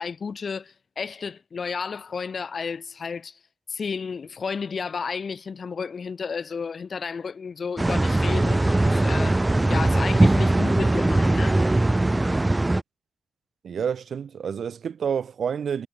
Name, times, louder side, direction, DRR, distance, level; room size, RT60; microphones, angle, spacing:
voice 1, 0.0-3.4 3.7-9.4 9.7-11.6, left 5 dB, 50° left, 5.1 m, -32 dB
sound 1, 7.8-12.8, right 2 dB, 15° right, 1.3 m, -20 dB
voice 2, 13.6-15.9, right 7 dB, 70° right, 3.3 m, -28 dB
wide cardioid pair, 150°, 0 cm